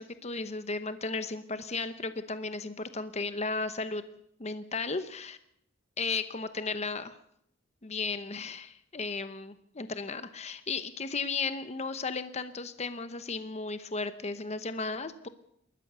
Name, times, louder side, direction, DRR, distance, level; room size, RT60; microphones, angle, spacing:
voice 1, 0.0-4.0 4.4-5.4 6.0-7.2 7.8-15.3, left 4 dB, 35° left, 11 dB, 1.0 m, -35 dB
28.0 x 13.5 x 6.8 m, 0.73 s
head